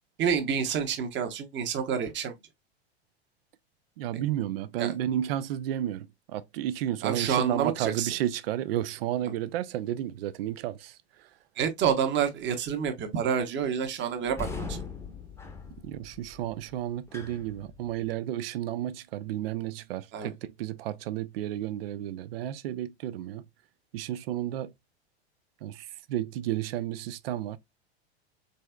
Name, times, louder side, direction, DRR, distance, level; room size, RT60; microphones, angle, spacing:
voice 1, 0.2-2.3 4.1-4.2 4.8-4.9 7.0-8.1 11.6-14.8 20.1-20.3, right 7 dB, 35° right, 1.1 m, -28 dB
voice 2, 4.0-11.0 15.8-23.4 23.9-24.7 25.6-27.6, right 12 dB, 65° right, 0.6 m, -32 dB
sound 1, 14.3-18.1, left 4 dB, 10° left, 0.8 m, -40 dB
4.1 x 3.3 x 2.3 m
hypercardioid pair, 90°, 32 cm